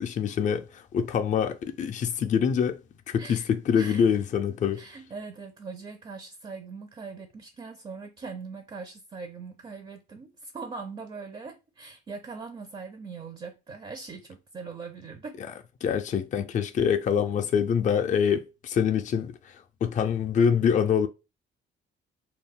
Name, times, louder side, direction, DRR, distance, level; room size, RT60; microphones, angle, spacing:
voice 1, 0.0-2.8 3.1-4.8 15.8-19.4 19.8-21.1, left 7 dB, 40° left, 0.4 m, -25 dB
voice 2, 3.2-4.2 4.7-15.4, right 4 dB, 30° right, 0.4 m, -41 dB
2.3 x 2.1 x 3.5 m
cardioid pair, 90°, 20 cm